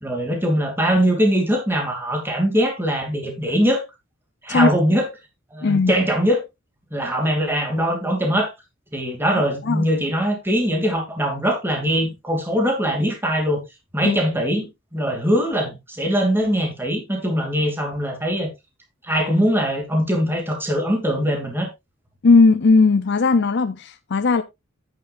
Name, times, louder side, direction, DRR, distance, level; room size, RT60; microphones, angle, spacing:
voice 1, 0.0-3.8 4.4-5.1 5.5-6.4 6.9-8.5 8.9-13.6 13.9-18.5 19.0-21.7, equal, 10° right, 2.7 m, -21 dB
voice 2, 5.6-5.9 9.3-9.9 14.0-14.2 22.2-24.4, left 4 dB, 60° left, 0.6 m, -17 dB
10.5 x 8.9 x 2.6 m
head